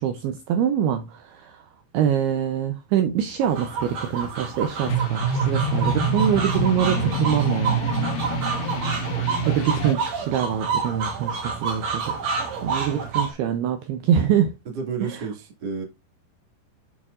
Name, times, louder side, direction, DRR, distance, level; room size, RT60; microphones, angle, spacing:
voice 1, 0.0-1.7 1.9-7.9 9.5-12.1 12.6-14.5 15.0-15.2, right 9 dB, 80° right, 2.4 m, -24 dB
sound 1, 3.4-13.3, right 5 dB, 60° right, 1.8 m, -29 dB
sound 2, 4.8-9.9, right 3 dB, 70° left, 1.8 m, -25 dB
voice 2, 14.7-15.8, right 5 dB, 40° right, 1.6 m, -31 dB
11.5 x 4.5 x 2.4 m
omnidirectional pair, 5.1 m